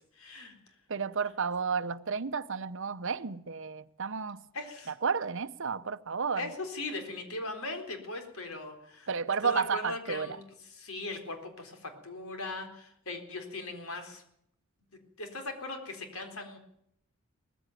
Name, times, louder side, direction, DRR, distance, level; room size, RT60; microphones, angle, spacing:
voice 1, 0.0-0.8 4.5-4.9 6.3-9.1 9.4-10.4 10.8-14.2 15.2-16.6, left 2 dB, 90° left, 4.0 m, -39 dB
voice 2, 0.9-4.4 4.9-6.5 9.1-10.4, right 5 dB, 65° right, 0.8 m, -32 dB
19.0 x 15.0 x 9.2 m
head